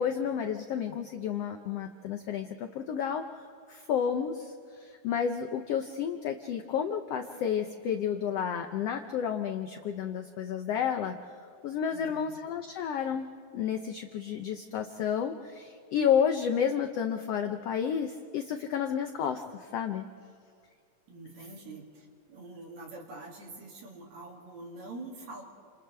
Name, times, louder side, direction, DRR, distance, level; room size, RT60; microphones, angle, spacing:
voice 1, 0.0-11.1 11.6-13.3 13.5-20.1, left 8 dB, 85° left, 6 dB, 1.4 m, -31 dB
voice 2, 11.9-12.4 21.1-25.4, right 2 dB, 60° right, 0 dB, 3.7 m, -45 dB
29.0 x 27.5 x 3.4 m, 2.2 s
omnidirectional pair, 3.8 m